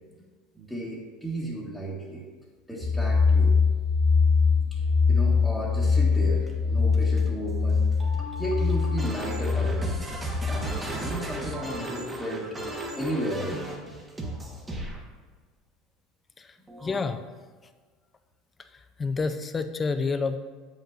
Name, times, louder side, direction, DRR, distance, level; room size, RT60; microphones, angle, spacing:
voice 1, 0.5-2.2 2.7-3.6 4.4-7.9 8.4-10.0 10.5-13.7, right 1 dB, ahead, -6 dB, 1.3 m, -34 dB
sound 1, 2.8-10.6, left 5 dB, 80° left, 1.5 m, -23 dB
sound 2, 6.2-15.0 16.7-17.1, right 1 dB, 20° right, 1.1 m, -36 dB
voice 2, 16.8-17.2 19.0-20.4, left 4 dB, 25° left, 10 dB, 0.5 m, -28 dB
7.2 x 5.4 x 2.5 m, 1.4 s
supercardioid pair, 100°, 0 cm